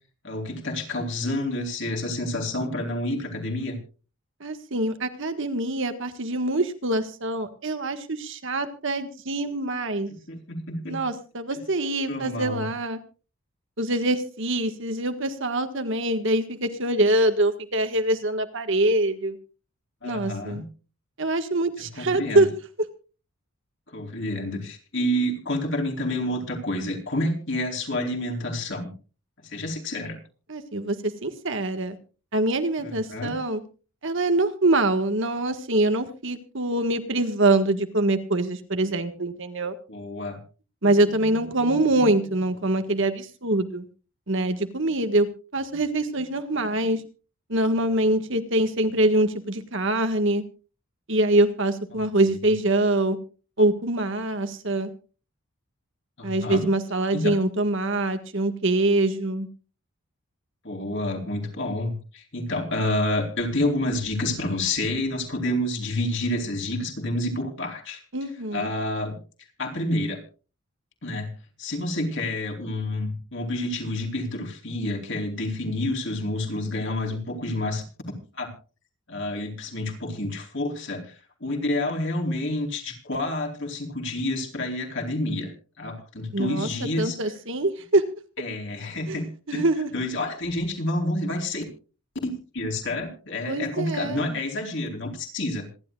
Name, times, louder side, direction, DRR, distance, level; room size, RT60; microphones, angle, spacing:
voice 1, 0.2-3.8 10.3-11.0 12.1-12.7 20.0-20.7 22.0-22.5 23.9-28.9 29.4-30.2 32.8-33.4 39.9-40.4 56.2-56.6 57.1-57.3 60.6-68.0 68.5-69.2 69.6-70.2 71.0-71.3 71.6-77.8 78.3-78.5 79.1-81.1 81.4-85.5 85.8-87.2 88.4-89.6 89.9-91.6 92.2-95.7, left 1 dB, 55° left, 1 dB, 4.3 m, -29 dB
voice 2, 4.4-10.1 10.9-13.0 13.8-19.4 20.0-20.6 21.2-22.6 30.5-32.0 32.3-33.6 34.0-39.7 40.8-43.9 44.3-45.3 45.5-47.0 47.5-50.4 51.1-53.2 53.6-54.9 56.2-59.5 68.1-68.7 86.3-86.7 87.0-88.0 89.1-89.2 89.5-89.9 93.5-94.4, right 2 dB, 60° right, 8 dB, 1.7 m, -24 dB
26.5 x 11.5 x 2.5 m, 0.35 s
head